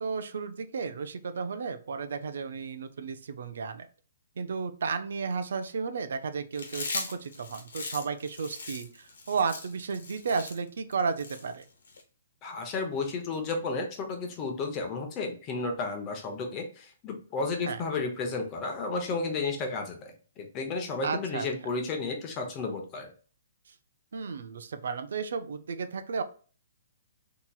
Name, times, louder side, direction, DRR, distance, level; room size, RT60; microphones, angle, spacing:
voice 1, 0.0-3.9 4.4-11.6 17.7-17.8 21.0-21.5 23.7-23.8 24.1-26.2, right 5 dB, 75° right, 10 dB, 0.5 m, -33 dB
Chewing mastication, 6.5-12.0, left 3 dB, 85° left, 1.1 m, -39 dB
voice 2, 12.4-20.1 20.4-23.1, left 3 dB, 25° left, 3 dB, 0.8 m, -32 dB
4.0 x 2.9 x 2.3 m, 0.39 s
hypercardioid pair, 160°, 0 cm